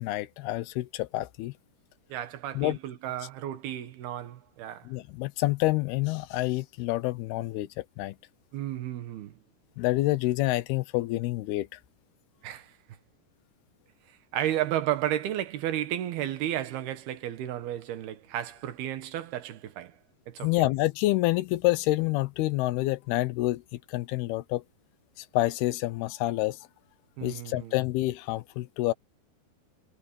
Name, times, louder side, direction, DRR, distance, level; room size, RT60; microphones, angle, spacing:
voice 1, 0.0-1.5 2.6-2.8 4.9-8.2 9.8-11.7 20.4-23.6 23.9-24.6 25.2-26.6 27.2-28.9, left 18 dB, 85° left, 2.7 m, -28 dB
voice 2, 2.1-4.9 8.5-9.4 12.4-12.7 14.3-20.0 20.3-20.5 27.2-27.7, right 12 dB, 75° right, 3.4 m, -33 dB
omnidirectional pair, 4.5 m